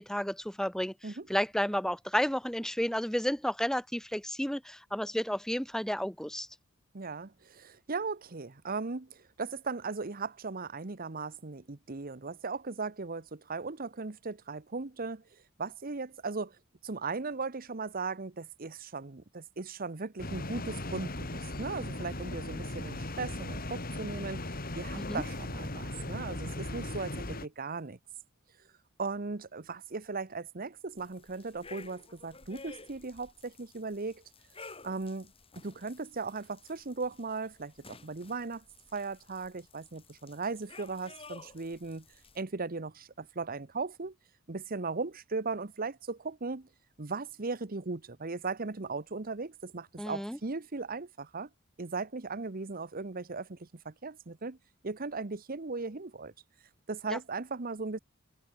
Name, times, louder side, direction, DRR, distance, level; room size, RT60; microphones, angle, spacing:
voice 1, 0.0-0.9 1.3-6.5 25.0-25.2 50.0-50.4 57.1-57.2, equal, 5° left, 1.3 m, -32 dB
voice 2, 6.9-15.2 15.6-16.6 16.8-24.5 24.7-28.0 29.0-34.2 34.8-38.6 38.9-42.0 42.3-44.1 44.5-46.7 47.0-51.5 51.8-54.6 54.8-56.3 56.9-58.0, right 4 dB, 45° right, 1.0 m, -37 dB
sound 1, 20.2-27.5, left 1 dB, 45° left, 4.1 m, -38 dB
sound 2, 31.0-42.4, left 3 dB, 30° left, 3.9 m, -53 dB
head